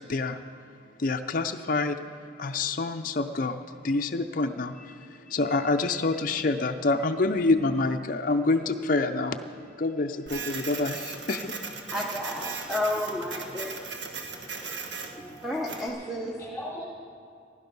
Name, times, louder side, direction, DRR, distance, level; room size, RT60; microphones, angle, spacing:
voice 1, 0.1-0.4 1.0-2.0 2.4-9.4 9.8-11.6, left 3 dB, 45° left, 6 dB, 0.5 m, -27 dB
Printer, 10.3-15.9, right 4 dB, 65° right, 1.3 m, -37 dB
voice 2, 11.9-13.8 15.4-16.4, left 1 dB, ahead, -3 dB, 0.9 m, -31 dB
voice 3, 13.9-16.1 16.4-16.9, left 1 dB, 15° left, -5 dB, 2.8 m, -44 dB
16.5 x 11.5 x 5.4 m, 2.4 s
head